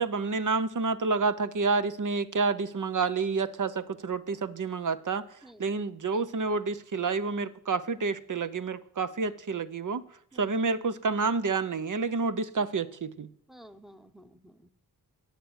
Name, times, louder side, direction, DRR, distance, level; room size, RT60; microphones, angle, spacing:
voice 1, 0.0-5.2 5.6-10.0 10.4-13.3, right 4 dB, 55° right, 0.8 m, -29 dB
voice 2, 13.5-14.7, right 1 dB, ahead, 0.9 m, -52 dB
10.5 x 8.1 x 8.1 m
wide cardioid pair, 65°, 38 cm